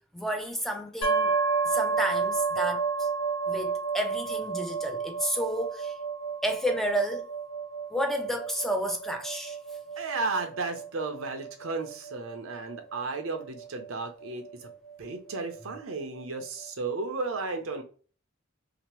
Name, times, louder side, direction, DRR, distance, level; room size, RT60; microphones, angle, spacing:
voice 1, 0.1-1.3 1.6-3.1 3.5-6.0 6.4-7.3 7.9-9.6, equal, ahead, 0.3 m, -31 dB
sound 1, 1.0-14.7, right 5 dB, 75° left, 1.0 m, -31 dB
voice 2, 10.0-14.7 15.0-17.8, right 3 dB, 85° right, 0.6 m, -34 dB
2.8 x 2.0 x 2.9 m
head